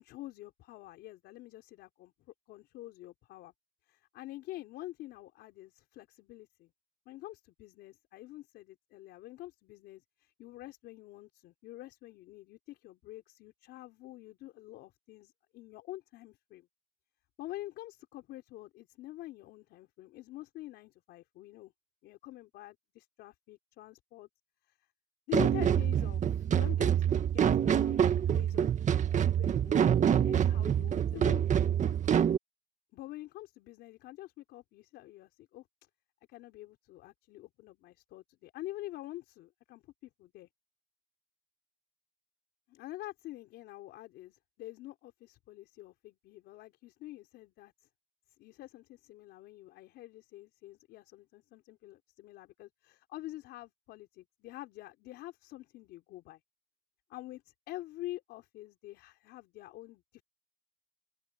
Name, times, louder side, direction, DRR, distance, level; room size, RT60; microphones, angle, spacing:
voice 1, 0.0-2.1 2.5-3.5 3.9-6.7 7.1-16.7 17.4-21.7 22.0-24.3 24.7-24.9 25.3-28.0 28.3-28.7 29.1-32.2 32.9-35.7 36.3-40.5 42.7-47.7 48.4-56.4 57.1-60.2, left 16 dB, 80° left, 4.6 m, -47 dB
sound 1, 25.3-32.4, right 9 dB, 45° right, 1.8 m, -26 dB
open air
cardioid pair, 110°, 17 cm